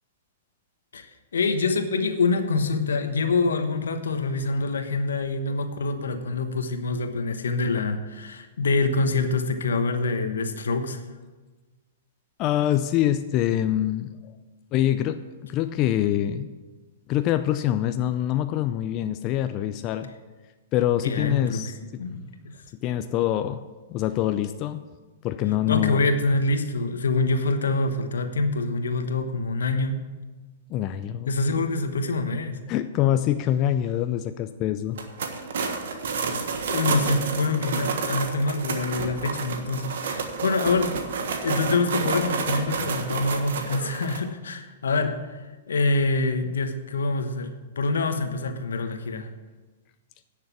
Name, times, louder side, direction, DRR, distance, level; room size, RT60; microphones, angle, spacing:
voice 1, 1.3-11.0 21.0-21.6 22.0-22.5 25.7-30.0 31.3-32.6 36.7-41.0 41.4-45.2 45.7-49.3, left 3 dB, 85° left, 8 dB, 1.1 m, -25 dB
voice 2, 12.4-14.3 14.7-16.5 17.1-20.1 20.7-22.1 22.8-24.8 25.2-26.1 30.7-31.3 32.7-35.0, left 12 dB, 35° left, 10 dB, 0.5 m, -25 dB
sound 1, 34.9-44.2, right 5 dB, 70° right, 1.4 m, -30 dB
10.0 x 6.6 x 7.1 m, 1.3 s
hypercardioid pair, 125°, 0 cm